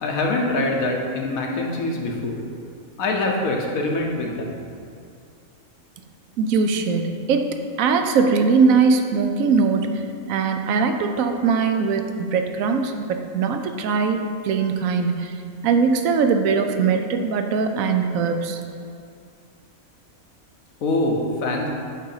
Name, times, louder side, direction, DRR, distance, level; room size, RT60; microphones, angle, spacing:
voice 1, 0.0-2.4 3.0-4.5 20.8-21.7, left 2 dB, 90° left, 0 dB, 1.4 m, -24 dB
voice 2, 6.4-14.2 14.4-15.4 15.6-18.6, right 5 dB, 80° right, 6 dB, 1.0 m, -21 dB
7.8 x 3.8 x 5.6 m, 2.4 s
omnidirectional pair, 1.4 m